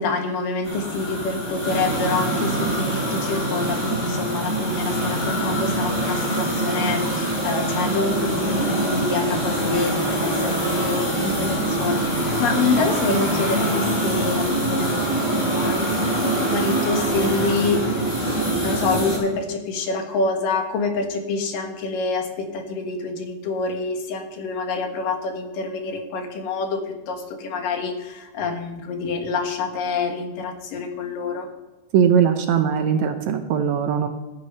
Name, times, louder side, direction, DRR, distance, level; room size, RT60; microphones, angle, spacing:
voice 1, 0.0-31.5, left 4 dB, 85° left, 4 dB, 3.2 m, -27 dB
sound 1, 0.6-19.2, right 1 dB, 25° left, 4.2 m, -24 dB
voice 2, 31.9-34.1, right 8 dB, 70° right, 7 dB, 1.9 m, -20 dB
14.0 x 9.8 x 5.4 m, 1.1 s
omnidirectional pair, 3.8 m